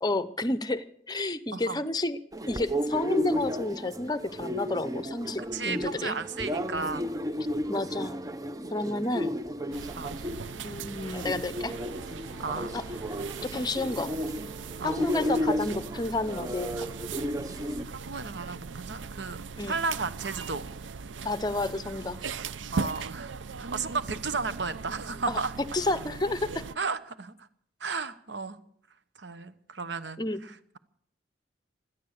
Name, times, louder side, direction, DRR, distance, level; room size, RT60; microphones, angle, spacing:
voice 1, 0.0-2.2 2.5-6.2 7.7-8.2 8.7-9.3 10.6-11.7 12.7-12.8 13.4-14.1 14.8-16.9 19.6-19.7 21.2-22.2 25.3-25.4 25.7-26.6 30.2-30.4, left 2 dB, 20° left, 13 dB, 0.7 m, -30 dB
sound 1, 2.3-17.8, equal, 20° right, 0.7 m, -33 dB
voice 2, 5.5-7.1 8.8-9.0 10.0-10.1 12.4-12.7 14.8-15.0 17.9-19.4 19.7-20.6 22.7-25.5 26.8-27.5 27.8-28.6 29.2-30.8, right 4 dB, 70° right, 12 dB, 1.1 m, -34 dB
sound 2, 9.7-26.7, right 5 dB, 90° right, 0.6 m, -39 dB
17.0 x 12.5 x 6.6 m, 0.66 s
head